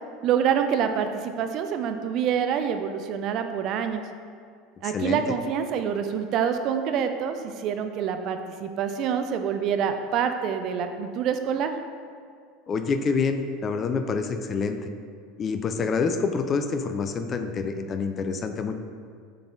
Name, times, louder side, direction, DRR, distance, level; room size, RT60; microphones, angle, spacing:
voice 1, 0.2-4.0 4.8-11.7, right 8 dB, 50° right, 7 dB, 0.4 m, -26 dB
voice 2, 12.7-14.9 15.4-18.7, left 5 dB, 35° left, 8 dB, 0.4 m, -27 dB
6.6 x 4.0 x 3.6 m, 2.2 s
figure-of-eight pair, 75°, 0 cm